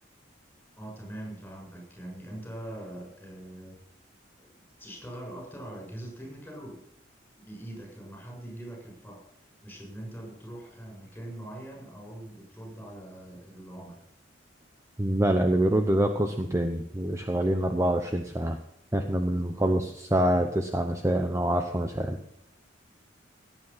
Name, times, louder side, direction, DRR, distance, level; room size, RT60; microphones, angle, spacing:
voice 1, 0.8-3.8 4.4-6.8 7.4-9.2 9.6-14.0, right 1 dB, 10° left, -1 dB, 7.4 m, -42 dB
voice 2, 15.0-18.6 18.9-22.2, right 1 dB, 15° right, 5 dB, 0.8 m, -26 dB
17.5 x 9.2 x 5.7 m, 0.73 s
head